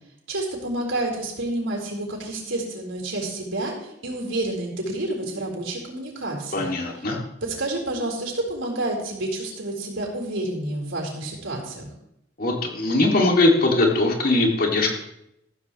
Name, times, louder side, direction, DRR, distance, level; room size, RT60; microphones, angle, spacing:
voice 1, 0.3-6.7 7.4-11.9, right 1 dB, 80° right, -1 dB, 4.2 m, -29 dB
voice 2, 6.5-7.2 12.4-14.9, left 2 dB, 50° left, 0 dB, 2.4 m, -20 dB
14.5 x 13.5 x 3.2 m, 0.80 s
head